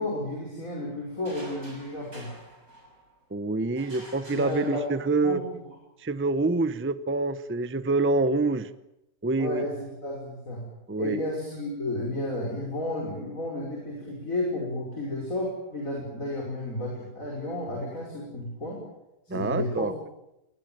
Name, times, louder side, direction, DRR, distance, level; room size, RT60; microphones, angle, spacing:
voice 1, 0.0-2.3 4.3-4.8 5.2-5.5 9.4-10.7 11.0-18.8 19.3-19.9, left 1 dB, 65° left, -2 dB, 6.0 m, -32 dB
sound 1, 1.2-3.2 3.8-5.3, right 1 dB, 70° right, 6.9 m, -48 dB
voice 2, 3.3-5.4 6.0-8.7 9.2-9.6 10.9-11.2 19.3-19.9, right 3 dB, 10° right, 13 dB, 0.6 m, -26 dB
23.0 x 19.5 x 9.2 m, 0.90 s
omnidirectional pair, 1.6 m